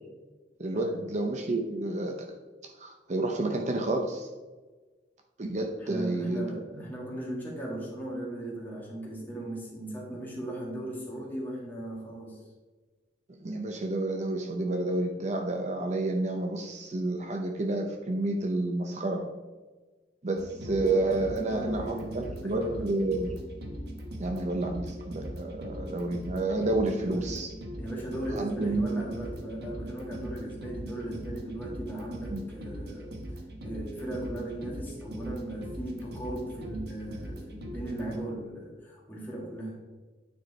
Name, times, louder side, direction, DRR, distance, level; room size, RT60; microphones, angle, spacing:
voice 1, 0.6-2.3 2.6-4.3 5.4-6.5 6.8-6.9 13.4-19.2 20.2-23.3 24.2-27.5 28.4-29.0 32.3-32.4, right 2 dB, 40° right, 4 dB, 0.7 m, -30 dB
voice 2, 5.8-12.4 21.3-22.8 26.9-27.4 27.8-33.1 33.6-39.8, right 1 dB, 10° left, -4 dB, 2.1 m, -37 dB
sound 1, 20.4-38.2, equal, 65° right, 1.1 m, -40 dB
9.2 x 4.5 x 4.3 m, 1.3 s
head